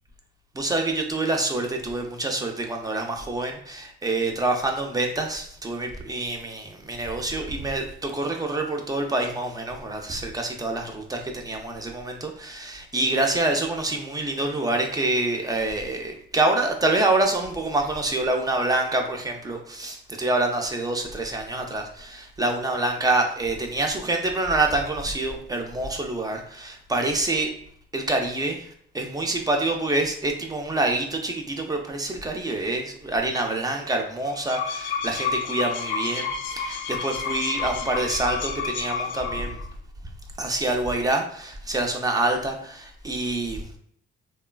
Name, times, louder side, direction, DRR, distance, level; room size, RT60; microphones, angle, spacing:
voice 1, 0.5-27.5 27.9-39.6 40.4-43.7, right 2 dB, 20° right, 3 dB, 0.4 m, -26 dB
sound 1, 34.3-39.6, left 6 dB, 75° left, 0.4 m, -30 dB
3.0 x 2.3 x 2.2 m, 0.65 s
cardioid pair, 90°, 20 cm